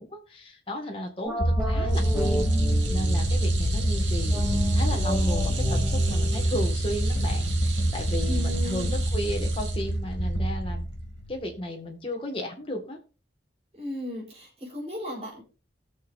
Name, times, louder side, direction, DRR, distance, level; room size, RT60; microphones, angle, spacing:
voice 1, 0.0-2.5 2.9-4.4 4.8-10.9 11.3-13.0, left 1 dB, 30° left, 2 dB, 1.8 m, -34 dB
sound 1, 1.2-3.5 4.3-7.6, equal, 10° right, 2.6 m, -33 dB
sound 2, 1.4-11.5, right 1 dB, 75° left, 2.1 m, -25 dB
sound 3, 1.9-10.4 10.7-10.9 12.1-12.2, right 6 dB, 85° right, 1.9 m, -39 dB
voice 2, 8.3-9.0 13.8-15.4, left 1 dB, 35° right, -2 dB, 4.3 m, -35 dB
19.5 x 6.5 x 2.6 m, 0.33 s
head